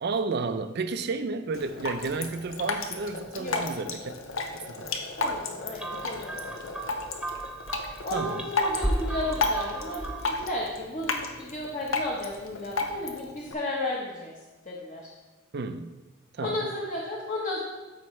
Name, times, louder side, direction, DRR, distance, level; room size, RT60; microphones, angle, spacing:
voice 1, 0.0-4.1 4.5-4.9 8.1-8.5 15.5-15.9 16.4-16.7, right 4 dB, 55° right, 9 dB, 0.5 m, -32 dB
Drip, 1.5-13.5, left 3 dB, 85° left, 0.8 m, -33 dB
voice 2, 5.2-6.8 8.0-14.3 14.6-15.1 16.4-17.6, left 1 dB, 40° left, -3 dB, 1.0 m, -33 dB
sound 1, 5.8-10.5, right 1 dB, 5° right, 0.5 m, -34 dB
13.0 x 4.6 x 3.2 m, 1.2 s
head